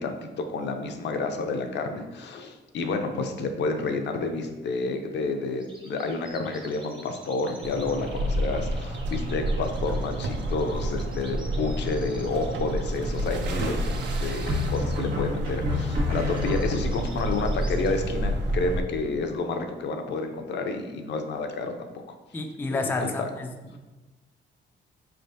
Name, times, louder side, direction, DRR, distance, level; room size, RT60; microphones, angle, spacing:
voice 1, 0.0-13.8 14.1-22.2 22.7-23.3 23.7-23.8, left 3 dB, 60° left, 5 dB, 0.5 m, -30 dB
sound 1, 5.6-17.9, right 1 dB, 25° right, 0.8 m, -49 dB
sound 2, 7.6-18.8, right 1 dB, 65° right, 0.5 m, -29 dB
sound 3, 11.8-12.4 14.5-17.1, left 3 dB, 50° right, 1.4 m, -30 dB
voice 2, 22.3-23.8, left 2 dB, 10° left, 4 dB, 0.3 m, -30 dB
4.2 x 3.3 x 2.6 m, 1.1 s
cardioid pair, 90°, 20 cm